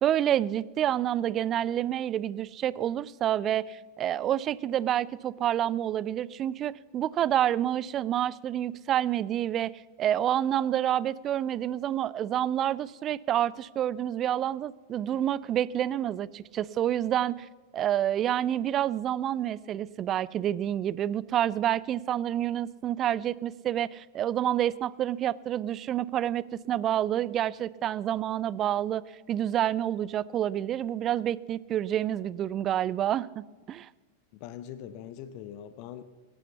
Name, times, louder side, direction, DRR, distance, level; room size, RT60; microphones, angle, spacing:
voice 1, 0.0-9.7 10.0-17.4 17.7-29.0 29.3-33.9, right 11 dB, 30° right, 21 dB, 0.4 m, -28 dB
voice 2, 34.3-36.0, left 10 dB, 45° left, 14 dB, 0.7 m, -42 dB
17.0 x 9.8 x 6.9 m, 1.3 s
figure-of-eight pair, 90°, 0 cm